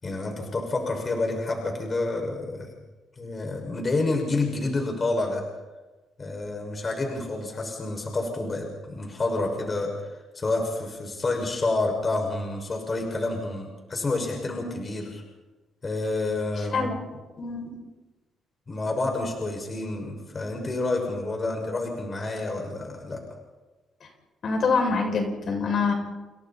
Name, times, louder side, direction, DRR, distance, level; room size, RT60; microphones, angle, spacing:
voice 1, 0.0-2.7 3.2-5.4 6.2-15.2 15.8-16.9 18.7-23.2, left 2 dB, 30° left, 2 dB, 6.3 m, -29 dB
voice 2, 17.4-17.7 24.4-25.9, left 4 dB, 55° left, 2 dB, 7.0 m, -25 dB
30.0 x 28.5 x 4.4 m, 1.2 s
cardioid pair, 90°, 0 cm